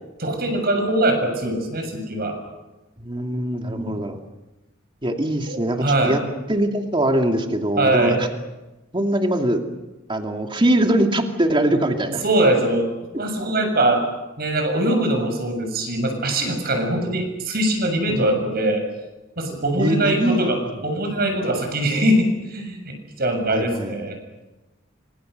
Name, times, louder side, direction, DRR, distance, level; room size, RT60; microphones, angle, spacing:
voice 1, 0.2-2.4 3.6-4.0 5.5-6.2 7.8-8.2 11.9-12.0 12.2-12.9 13.2-14.0 14.4-18.8 19.4-24.2, right 1 dB, 50° right, 5 dB, 7.2 m, -22 dB
voice 2, 3.0-4.2 5.0-6.2 6.5-8.3 8.9-9.6 10.1-12.2 18.1-18.2 19.8-20.4 23.5-23.9, right 1 dB, 25° right, 4 dB, 2.5 m, -22 dB
28.0 x 25.5 x 6.7 m, 1.0 s
head